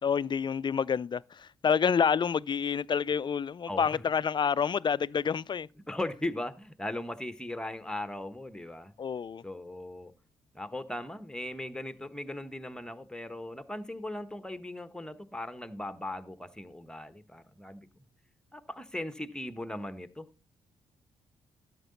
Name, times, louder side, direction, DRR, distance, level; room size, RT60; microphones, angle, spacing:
voice 1, 0.0-5.7 9.0-9.4, left 7 dB, 35° left, 0.4 m, -28 dB
voice 2, 3.7-4.0 5.9-8.9 9.4-10.1 10.5-18.1 18.5-20.3, left 1 dB, 5° left, 1.1 m, -38 dB
13.0 x 6.6 x 4.0 m
hypercardioid pair, 40°, 14 cm